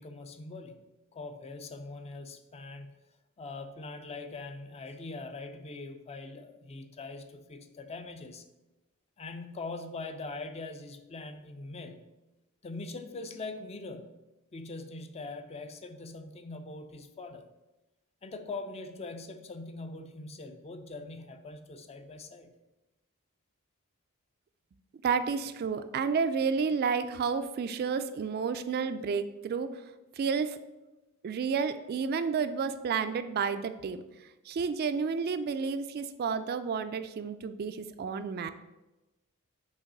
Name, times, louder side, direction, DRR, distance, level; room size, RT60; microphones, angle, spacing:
voice 1, 0.0-2.9 3.4-8.5 9.2-12.1 12.6-14.2 14.5-17.5 18.2-22.6, left 3 dB, 30° left, 8 dB, 0.4 m, -42 dB
voice 2, 25.0-29.8 30.2-30.6 31.2-34.0 34.5-38.5, right 5 dB, 45° right, 11 dB, 0.3 m, -31 dB
6.2 x 3.0 x 5.3 m, 1.0 s
head